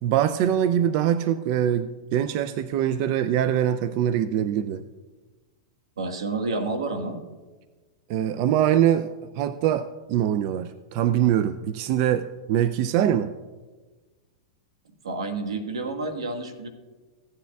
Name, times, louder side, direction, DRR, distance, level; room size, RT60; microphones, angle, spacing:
voice 1, 0.0-4.8 8.1-13.3, right 10 dB, 50° right, 12 dB, 0.4 m, -23 dB
voice 2, 6.0-7.2 15.0-16.7, right 3 dB, 90° right, 5 dB, 1.4 m, -29 dB
15.5 x 9.2 x 2.3 m, 1.3 s
hypercardioid pair, 125°, 3 cm